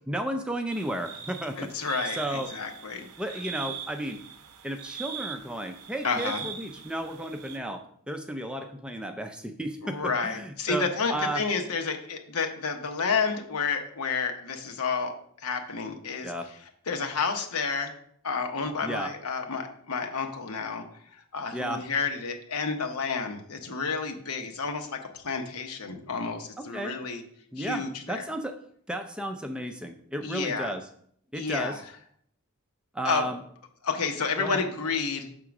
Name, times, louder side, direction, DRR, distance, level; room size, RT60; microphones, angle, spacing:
voice 1, 0.1-1.9 2.1-2.5 3.2-4.2 4.6-11.4 16.2-16.5 18.8-19.1 21.5-21.8 26.6-26.9 27.5-28.6 28.9-30.9 31.3-31.8 32.9-33.4 34.4-34.6, right 1 dB, 5° right, 5 dB, 0.4 m, -33 dB
sound 1, 0.7-7.6, right 8 dB, 90° right, 0.6 m, -41 dB
voice 2, 1.6-3.1 6.0-6.5 9.8-15.1 15.4-16.3 16.9-17.9 18.2-20.8 21.1-27.2 27.6-28.2 30.2-30.7 31.3-31.8 33.0-33.2 33.8-35.3, left 5 dB, 80° left, 5 dB, 0.9 m, -30 dB
6.1 x 3.7 x 5.9 m, 0.64 s
head